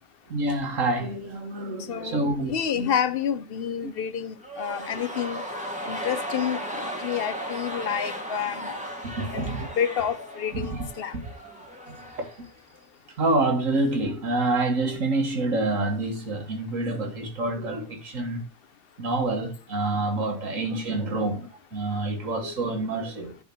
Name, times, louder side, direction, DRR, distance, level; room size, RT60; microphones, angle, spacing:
voice 1, 0.3-2.9 3.8-3.9 4.7-4.9 9.0-9.7 10.5-10.8 11.1-11.2 13.2-18.4 19.0-23.4, right 2 dB, 75° right, 2.0 m, -27 dB
voice 2, 1.9-5.4 5.9-8.7 9.3-11.1 21.1-21.2, left 8 dB, 50° left, 0.8 m, -29 dB
sound 1, 4.4-12.5 12.7-12.8, equal, 5° right, 1.5 m, -36 dB
10.0 x 3.7 x 5.8 m
omnidirectional pair, 1.4 m